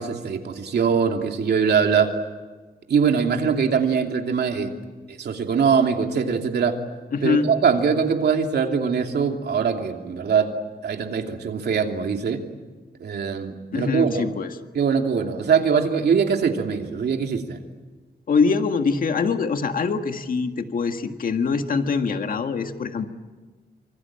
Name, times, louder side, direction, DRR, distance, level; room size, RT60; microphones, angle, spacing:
voice 1, 0.0-2.1 2.9-4.7 5.2-6.8 7.2-10.5 10.8-12.4 13.0-14.2 14.7-17.6, right 6 dB, 80° right, 3 dB, 2.9 m, -22 dB
voice 2, 7.1-7.5 13.7-14.5 18.3-23.1, left 5 dB, 55° left, 6 dB, 1.8 m, -23 dB
26.0 x 25.5 x 9.0 m, 1.4 s
wide cardioid pair, 175°, 17 cm